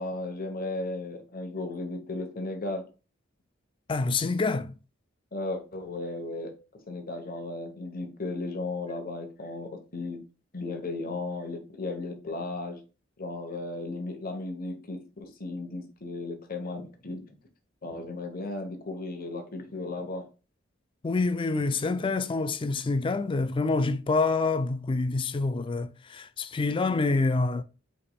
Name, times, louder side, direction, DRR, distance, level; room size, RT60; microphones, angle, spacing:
voice 1, 0.0-2.8 5.3-6.5 6.9-10.2 10.5-12.8 13.2-17.2 17.8-20.2, left 2 dB, 45° left, 1.0 m, -35 dB
voice 2, 3.9-4.8 21.0-27.6, left 3 dB, 25° left, 0.4 m, -27 dB
5.0 x 4.4 x 2.3 m
head